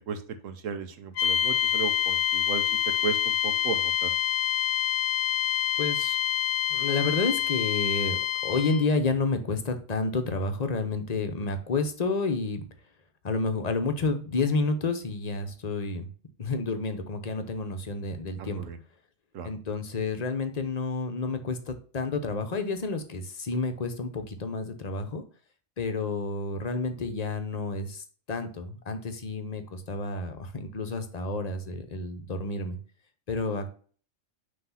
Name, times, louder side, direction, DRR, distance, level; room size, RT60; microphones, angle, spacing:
voice 1, 0.0-2.6 3.0-4.1 18.4-18.8 19.3-19.5, right 6 dB, 85° right, 9 dB, 1.2 m, -35 dB
sound 1, 1.2-8.9, left 9 dB, 75° left, 1.0 m, -27 dB
voice 2, 5.8-6.2 6.7-12.6 13.2-16.1 16.4-18.6 19.4-25.2 25.8-32.8 33.3-33.7, left 3 dB, 40° left, 7 dB, 0.8 m, -30 dB
5.8 x 3.2 x 5.6 m, 0.41 s
omnidirectional pair, 1.3 m